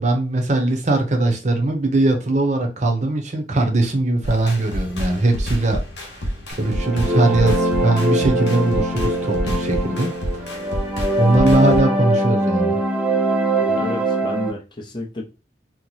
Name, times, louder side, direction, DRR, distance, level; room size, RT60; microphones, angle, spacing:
voice 1, 0.0-5.8 6.6-10.5 11.2-12.8, right 2 dB, 40° right, 0.7 m, -20 dB
sound 1, 4.2-11.8, equal, 75° left, 1.1 m, -28 dB
sound 2, 6.6-14.5, right 1 dB, 5° right, 0.8 m, -22 dB
voice 2, 13.6-15.2, left 2 dB, 25° left, 0.7 m, -31 dB
3.0 x 2.0 x 3.9 m
head